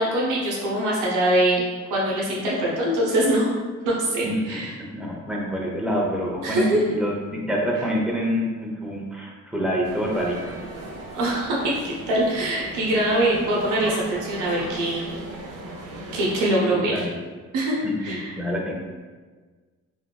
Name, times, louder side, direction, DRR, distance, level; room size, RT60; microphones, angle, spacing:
voice 1, 0.0-1.6 1.9-3.5 3.9-4.7 6.4-6.8 11.1-15.0 16.1-17.0 17.5-18.3, right 1 dB, 85° right, -4 dB, 0.8 m, -23 dB
voice 2, 4.2-4.6 4.9-10.5 16.7-17.2 17.8-18.7, equal, 5° right, -3 dB, 0.6 m, -27 dB
sound 1, 9.8-16.5, right 1 dB, 55° right, 0.6 m, -37 dB
3.3 x 2.1 x 2.3 m, 1.4 s
cardioid pair, 90°, 30 cm